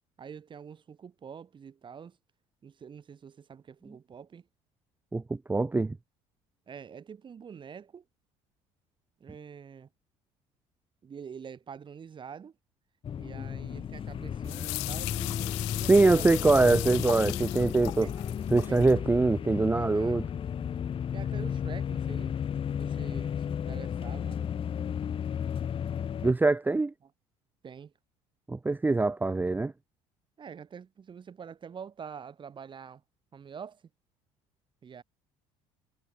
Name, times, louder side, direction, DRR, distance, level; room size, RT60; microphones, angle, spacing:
voice 1, 0.2-2.2 2.6-4.4 6.7-8.0 9.2-9.9 11.0-12.5 13.2-16.5 18.0-18.2 18.7-18.8 19.7-20.2 21.1-22.4 22.8-24.4 27.6-27.9 30.4-33.0 33.3-33.8 34.8-35.0, right 7 dB, 35° right, 7.9 m, -46 dB
voice 2, 5.1-6.0 15.9-18.1 18.5-20.3 26.2-26.9 28.5-29.7, right 3 dB, 15° right, 1.0 m, -23 dB
sound 1, 13.0-26.3, left 8 dB, 40° left, 3.1 m, -33 dB
sound 2, 14.4-18.9, left 28 dB, 90° left, 4.1 m, -37 dB
supercardioid pair, 105°, 14 cm